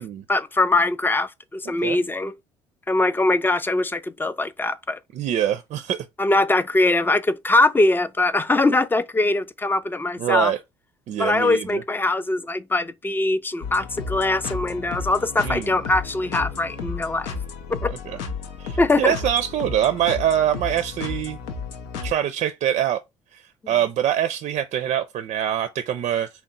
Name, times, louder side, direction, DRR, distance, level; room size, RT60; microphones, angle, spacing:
voice 1, 0.3-2.3 2.9-5.0 6.2-10.5 11.2-17.4 17.7-17.9 18.8-19.1, left 2 dB, 15° left, 0.4 m, -22 dB
voice 2, 5.1-6.1 10.2-10.6 11.1-11.8 15.4-15.8 17.9-18.2 18.6-21.4 22.0-23.0 23.3-26.3, right 10 dB, 55° right, 0.4 m, -24 dB
sound 1, 13.6-22.1, left 5 dB, 80° left, 0.5 m, -33 dB
2.8 x 2.1 x 3.8 m
hypercardioid pair, 55°, 14 cm